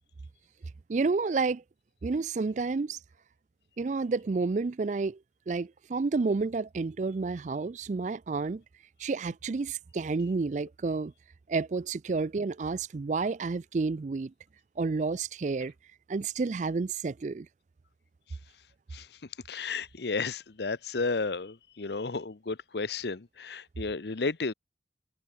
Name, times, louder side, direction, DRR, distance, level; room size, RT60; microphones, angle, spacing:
voice 1, 0.9-1.6 2.0-3.0 3.8-5.2 5.5-8.6 9.0-11.1 11.5-14.3 14.8-15.7 16.1-17.5, right 4 dB, 40° right, 0.4 m, -30 dB
voice 2, 19.5-24.5, left 4 dB, 70° left, 0.8 m, -33 dB
head